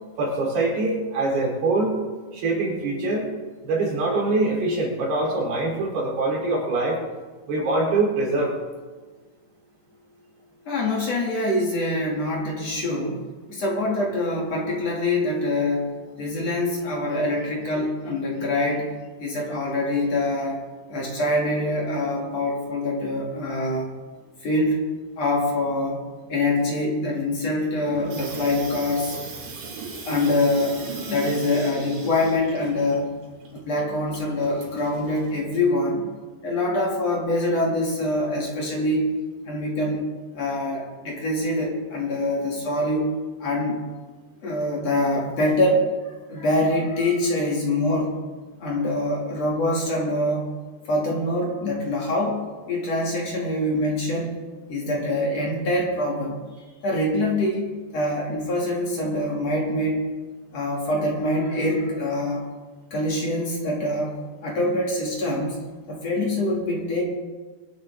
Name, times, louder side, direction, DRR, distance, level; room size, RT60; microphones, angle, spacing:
voice 1, 0.2-2.0 2.3-3.3 3.6-7.0 7.5-8.5, right 2 dB, 85° right, -3 dB, 5.7 m, -24 dB
voice 2, 10.7-13.2 13.5-15.9 16.2-18.9 19.2-20.6 20.9-23.9 24.4-26.0 26.3-29.2 30.0-33.2 33.5-36.0 36.4-39.1 39.4-40.1 40.3-43.1 43.4-43.8 44.4-45.9 46.3-48.2 48.6-50.5 50.8-52.4 52.7-54.4 54.7-56.4 56.8-57.7 57.9-60.1 60.5-62.5 62.9-64.2 64.4-65.6 65.9-67.0, left 1 dB, 45° left, -2 dB, 3.2 m, -24 dB
Water tap faucet / Sink (filling or washing), 27.8-35.4, right 4 dB, 55° right, 4.0 m, -38 dB
24.0 x 10.5 x 3.7 m, 1.3 s
omnidirectional pair, 4.5 m